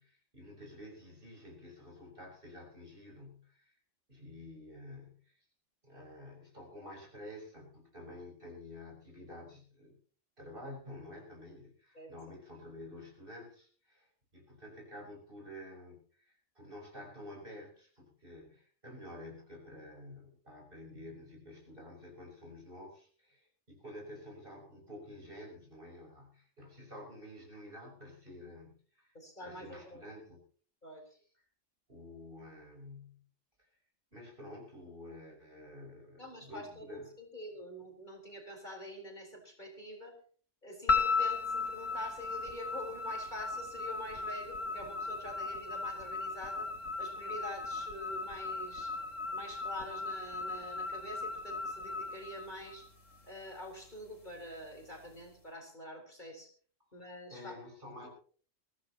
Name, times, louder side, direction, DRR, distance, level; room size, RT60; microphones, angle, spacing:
voice 1, 0.0-3.8 4.1-5.4 5.8-10.0 10.4-29.1 29.4-30.4 31.9-33.2 34.1-37.1 56.9-57.0 57.3-58.1, left 1 dB, 45° right, 0 dB, 6.8 m, -50 dB
voice 2, 29.1-30.0 30.8-31.0 36.2-40.2 40.6-46.7 47.0-48.9 49.3-52.9 53.3-56.5 56.9-57.5 58.0-58.1, left 1 dB, 40° left, 1 dB, 4.5 m, -46 dB
sound 1, 40.9-53.2, left 4 dB, 85° left, 3.1 m, -36 dB
23.5 x 15.5 x 3.0 m, 0.44 s
omnidirectional pair, 1.3 m